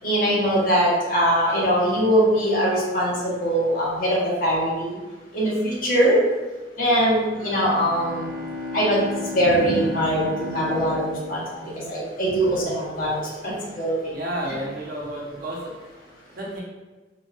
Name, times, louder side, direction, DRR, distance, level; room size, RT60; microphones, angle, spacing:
voice 1, 0.0-4.9 5.3-6.2 6.8-8.2 8.7-9.0 9.3-11.4 11.9-13.2 13.4-13.9, equal, 50° left, -6 dB, 1.0 m, -21 dB
Bowed string instrument, 7.3-12.3, left 3 dB, 85° right, 0.3 m, -34 dB
voice 2, 14.1-16.0 16.3-16.6, right 1 dB, 55° right, -4 dB, 0.9 m, -31 dB
3.9 x 2.3 x 2.4 m, 1.2 s
head